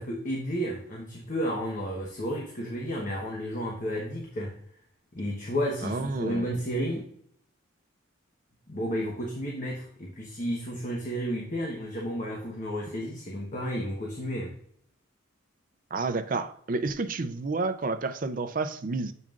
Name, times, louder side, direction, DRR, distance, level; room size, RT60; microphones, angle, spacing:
voice 1, 0.0-4.6 5.1-7.1 8.7-14.5, equal, 40° left, 1.0 m, -32 dB
voice 2, 5.8-6.5 15.9-19.1, right 3 dB, 40° right, 0.4 m, -30 dB
7.4 x 5.5 x 2.4 m
head